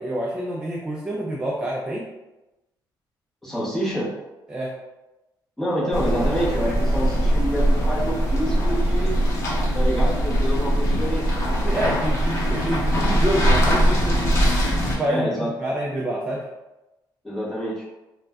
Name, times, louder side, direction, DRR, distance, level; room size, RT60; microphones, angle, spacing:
voice 1, 0.0-2.1 4.5-4.8 11.6-14.4 14.9-16.5, right 1 dB, 10° right, -3 dB, 0.3 m, -27 dB
voice 2, 3.4-4.1 5.6-9.2 9.4-11.3 15.1-15.5 17.2-17.8, equal, 5° left, -8 dB, 0.9 m, -27 dB
sound 1, 5.9-14.9, equal, 40° left, 0.7 m, -21 dB
2.5 x 2.1 x 3.4 m, 1.0 s
cardioid pair, 160°, 8 cm